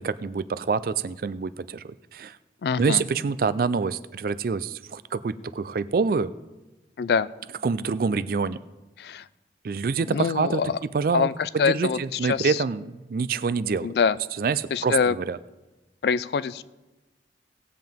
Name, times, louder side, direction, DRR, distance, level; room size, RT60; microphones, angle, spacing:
voice 1, 0.0-2.4 2.8-6.3 7.6-8.6 9.6-10.6 10.9-13.9 14.4-15.4, right 5 dB, 55° right, 15 dB, 0.4 m, -26 dB
voice 2, 2.6-3.0 7.0-7.3 9.0-9.3 10.1-10.8 11.1-12.6 13.8-14.2 14.7-15.2 16.0-16.6, left 6 dB, 65° left, 17 dB, 0.3 m, -25 dB
18.0 x 7.6 x 3.5 m, 1.1 s
head